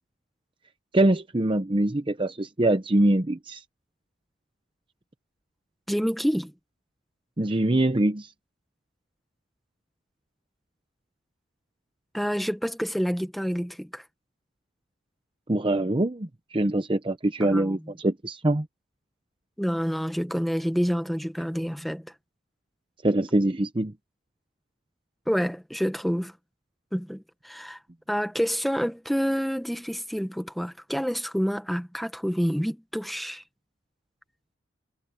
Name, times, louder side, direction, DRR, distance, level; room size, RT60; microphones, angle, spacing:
voice 1, 0.9-3.6 7.4-8.3 15.5-18.7 23.0-23.9, right 1 dB, 25° right, 0.7 m, -24 dB
voice 2, 5.9-6.5 12.1-14.0 17.4-17.8 19.6-22.1 25.3-26.3 26.9-27.8 28.1-33.4, equal, ahead, 1.3 m, -28 dB
head